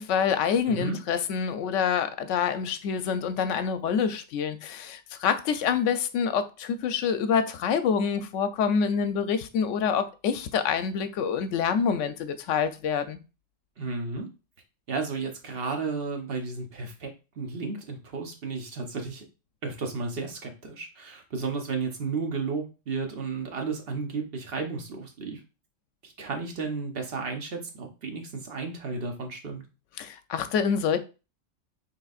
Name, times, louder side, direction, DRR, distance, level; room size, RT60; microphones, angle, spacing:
voice 1, 0.0-13.2 30.0-31.0, left 7 dB, 75° left, 0.9 m, -26 dB
voice 2, 0.7-1.0 13.8-14.3 14.9-17.1 17.4-19.2 19.6-25.4 26.0-29.6, right 4 dB, 50° right, 1.0 m, -33 dB
5.7 x 3.6 x 2.4 m
omnidirectional pair, 1.3 m